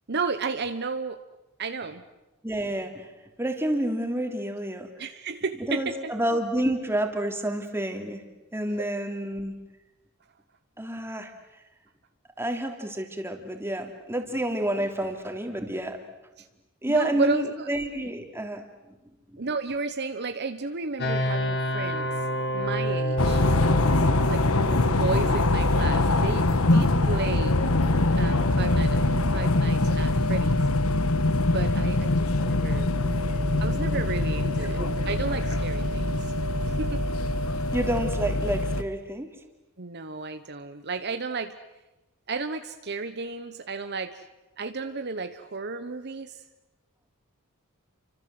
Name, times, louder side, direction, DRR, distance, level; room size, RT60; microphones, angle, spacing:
voice 1, 0.1-1.2 1.6-2.0 5.0-6.1 16.4-16.5 16.9-17.7 19.4-22.1 22.5-23.4 24.3-27.6 28.2-29.0 29.3-30.5 31.5-32.9 33.6-36.3 36.7-37.0 39.8-41.6 42.3-44.2 44.6-46.4, right 4 dB, 50° right, 9 dB, 1.1 m, -33 dB
voice 2, 2.4-3.1 3.4-4.9 5.7-8.2 8.5-9.6 10.8-11.3 12.4-16.0 16.8-19.0 19.3-19.4 33.0-33.5 34.6-34.9 37.7-39.3, right 1 dB, 10° right, 4 dB, 3.2 m, -29 dB
sound 1, 21.0-33.8, equal, 50° left, 4.7 m, -32 dB
sound 2, 23.2-38.8, left 2 dB, 85° left, 1.4 m, -23 dB
30.0 x 25.5 x 7.8 m, 1.0 s
head